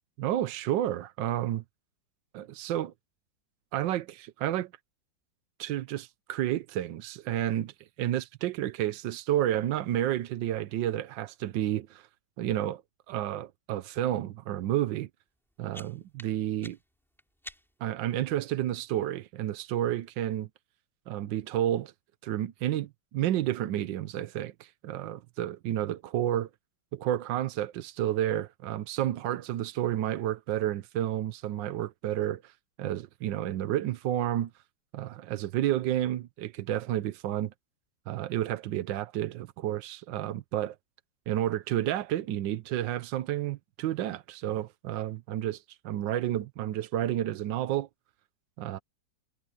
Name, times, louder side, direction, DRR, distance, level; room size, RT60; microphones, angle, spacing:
voice 1, 0.2-1.6 2.3-2.9 3.7-4.7 5.6-7.7 8.0-12.1 12.4-12.8 13.1-15.1 15.6-16.8 17.8-20.5 21.1-21.9 22.2-26.5 26.9-32.5 32.8-34.5 34.9-37.5 38.1-40.8 41.3-45.6 45.8-47.9 48.6-48.8, right 12 dB, 85° right, 1.5 m, -30 dB
sound 1, 15.3-18.0, equal, ahead, 3.1 m, -50 dB
omnidirectional pair, 2.0 m